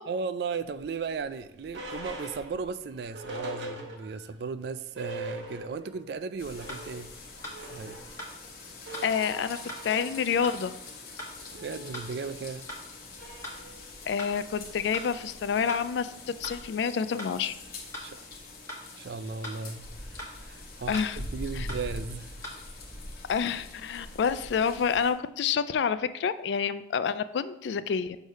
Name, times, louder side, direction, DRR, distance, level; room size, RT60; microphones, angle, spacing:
voice 1, 0.1-7.1 7.6-8.0 11.5-12.7 18.0-18.2 18.9-22.5, right 5 dB, 60° right, 0.3 m, -36 dB
sound 1, 0.7-4.4 4.7-4.8 4.9-6.0 6.3-16.8, right 1 dB, 85° right, 1.1 m, -44 dB
sound 2, 6.0-6.1 6.7-6.8 7.4-7.6 8.2-8.3 8.9-9.1 9.7-9.8 10.4-10.6 11.2-11.3 11.9-12.1 12.7-12.8 13.4-13.6 14.2-14.3 14.9-15.1 15.7-15.8 16.4-16.6 17.2-17.3 17.9-18.1 18.7-18.8 19.4-19.6 20.2-20.3 20.9-21.1 21.7-21.8 22.4-22.6, left 1 dB, 15° left, 1.1 m, -39 dB
sound 3, 6.4-25.1, left 2 dB, 50° left, 1.1 m, -44 dB
voice 2, 9.0-9.6 9.8-10.7 14.1-17.5 20.9-21.2 21.6-21.7 23.3-28.2, left 6 dB, 70° left, 0.3 m, -28 dB
6.2 x 3.3 x 5.4 m
head